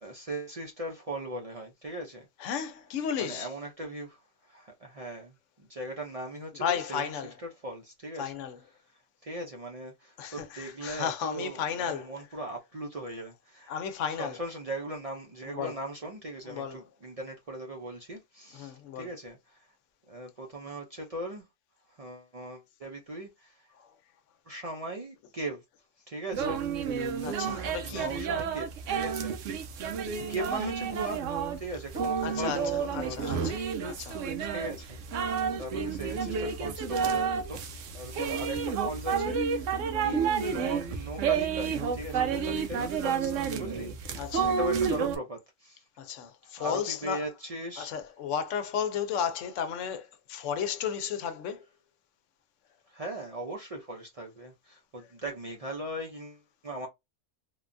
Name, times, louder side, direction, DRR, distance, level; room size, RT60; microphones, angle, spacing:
voice 1, 0.0-2.5 3.2-7.1 7.6-8.3 9.2-13.7 14.2-19.7 20.1-21.4 21.9-23.7 24.5-25.6 26.1-27.0 27.8-29.4 30.0-31.2 31.6-34.0 34.4-37.6 37.9-45.8 46.4-47.9 52.9-56.9, right 1 dB, 45° right, 0.5 m, -39 dB
voice 2, 2.4-3.5 6.6-7.3 8.2-8.6 10.2-12.1 13.7-14.4 15.5-15.7 16.5-16.8 18.5-19.1 23.8-23.9 27.2-28.1 32.2-34.2 44.2-44.6 46.0-47.3 47.8-51.6, left 8 dB, 80° left, 0.9 m, -34 dB
sound 1, 26.3-45.2, right 6 dB, 90° right, 1.0 m, -30 dB
3.3 x 2.2 x 2.5 m
omnidirectional pair, 1.3 m